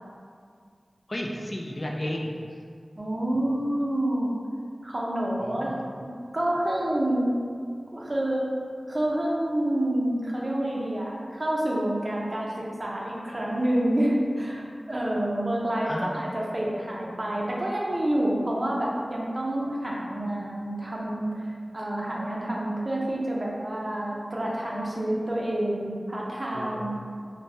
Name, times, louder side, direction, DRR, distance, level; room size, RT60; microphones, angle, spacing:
voice 1, 1.1-2.3 5.4-5.8 15.9-16.1 26.5-27.0, left 1 dB, 40° left, -1 dB, 0.3 m, -33 dB
voice 2, 3.0-4.3 4.8-5.7 6.3-7.3 7.9-8.5 8.9-12.5 12.8-27.0, right 1 dB, 45° right, -4 dB, 0.5 m, -28 dB
3.2 x 2.1 x 2.6 m, 2.2 s
wide cardioid pair, 45°, 0 cm